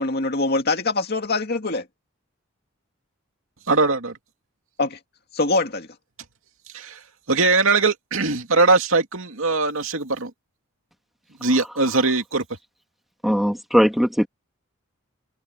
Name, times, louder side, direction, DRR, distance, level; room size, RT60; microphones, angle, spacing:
voice 1, 0.0-1.8 4.8-5.0 5.3-5.9, left 3 dB, 50° left, 2.3 m, -23 dB
voice 2, 3.7-4.1 6.7-7.0 7.3-10.3 11.4-12.4, right 3 dB, 70° right, 2.6 m, -20 dB
voice 3, 13.2-14.3, equal, ahead, 2.1 m, -19 dB
head